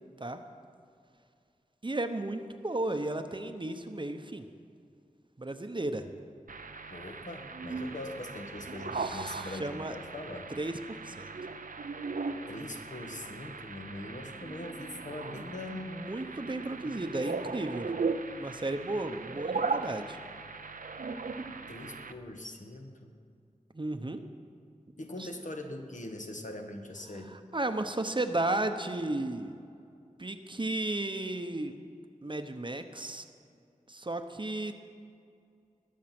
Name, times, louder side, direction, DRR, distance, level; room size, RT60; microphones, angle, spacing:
voice 1, 1.8-4.5 5.4-6.1 8.9-9.9 10.6-11.3 15.9-17.9 18.3-20.2 23.7-24.2 25.2-25.3 27.3-29.6 30.2-31.7 32.2-33.2 33.9-34.9, right 2 dB, 35° right, 7 dB, 0.9 m, -34 dB
sound 1, 6.5-22.1, right 4 dB, 75° right, 0.6 m, -38 dB
voice 2, 6.9-10.5 12.5-15.9 16.8-17.5 21.7-23.2 25.0-27.3, left 1 dB, 65° left, 3 dB, 1.5 m, -42 dB
20.5 x 7.6 x 6.1 m, 2.4 s
wide cardioid pair, 70°, 14 cm